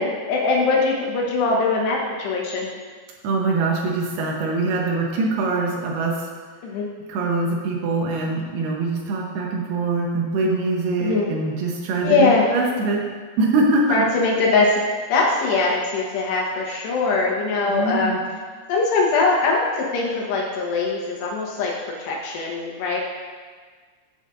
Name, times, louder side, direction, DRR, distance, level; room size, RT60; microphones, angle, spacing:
voice 1, 0.0-2.7 6.6-6.9 11.0-11.3 12.0-12.5 13.9-14.8 15.1-18.2 18.7-21.7 22.0-23.0, left 3 dB, 85° left, -2 dB, 3.3 m, -21 dB
voice 2, 3.2-6.3 7.1-13.0 13.4-14.1 17.7-18.2, right 3 dB, 75° right, -1 dB, 2.7 m, -23 dB
13.5 x 5.7 x 2.5 m, 1.5 s
omnidirectional pair, 4.8 m